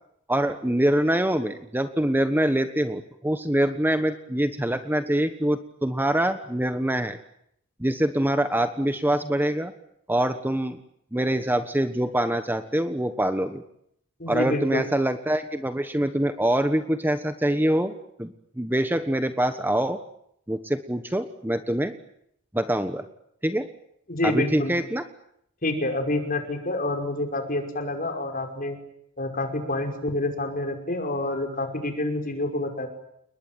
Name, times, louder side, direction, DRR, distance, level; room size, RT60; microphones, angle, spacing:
voice 1, 0.3-7.2 7.8-9.7 10.1-10.8 11.1-13.6 14.3-17.9 18.2-20.0 20.5-21.9 22.5-23.0 23.4-23.7 24.2-25.0, right 1 dB, 10° right, 9 dB, 1.3 m, -24 dB
voice 2, 14.2-14.9 24.1-24.7 25.6-28.8 29.2-32.9, left 2 dB, 45° left, 4 dB, 5.6 m, -28 dB
30.0 x 21.0 x 9.3 m, 0.74 s
head